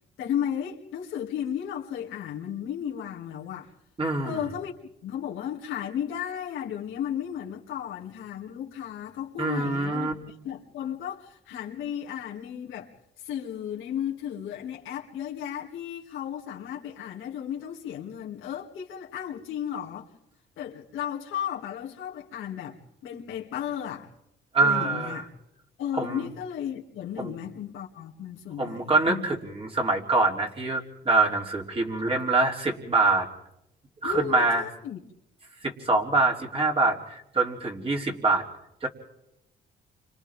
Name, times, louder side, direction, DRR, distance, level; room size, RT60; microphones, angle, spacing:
voice 1, 0.2-3.7 4.2-4.7 5.0-12.9 13.2-20.1 20.6-24.1 24.6-25.3 25.8-29.3 34.0-35.0, left 9 dB, 90° left, 2.6 m, -34 dB
voice 2, 4.0-4.4 9.4-10.1 24.5-25.2 25.9-26.3 27.2-27.3 28.6-33.3 34.0-34.6 35.6-38.4 38.8-38.9, right 3 dB, 30° right, 3.4 m, -25 dB
30.0 x 26.0 x 3.6 m
cardioid pair, 90°, 20 cm